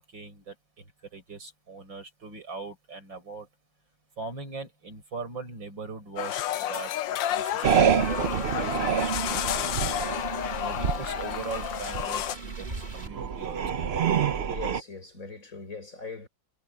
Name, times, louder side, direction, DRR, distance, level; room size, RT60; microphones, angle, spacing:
voice 1, 0.0-3.5 4.2-9.9 10.6-13.8, right 4 dB, 75° right, 7.5 m, -40 dB
sound 1, 6.2-12.4, left 11 dB, 75° left, 1.5 m, -31 dB
sound 2, 7.4-13.1, right 1 dB, 25° right, 4.1 m, -45 dB
sound 3, 7.6-14.8, right 7 dB, 50° right, 0.7 m, -28 dB
voice 2, 14.5-16.3, left 4 dB, 45° left, 5.8 m, -41 dB
omnidirectional pair, 2.1 m